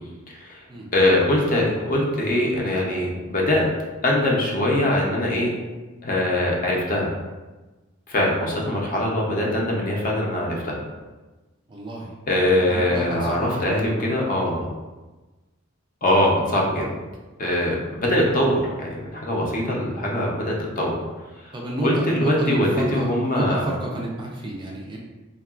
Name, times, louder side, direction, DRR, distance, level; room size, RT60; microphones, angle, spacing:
voice 1, 0.3-0.6 0.9-3.7 4.0-5.5 6.0-7.1 8.1-10.7 12.3-14.7 16.0-16.9 17.4-21.0 21.4-21.5 21.8-23.6, left 1 dB, 40° left, -2 dB, 0.6 m, -22 dB
voice 2, 11.7-12.1 12.6-13.8 21.5-25.0, right 1 dB, 20° right, -2 dB, 0.3 m, -30 dB
3.6 x 2.3 x 2.3 m, 1.2 s
head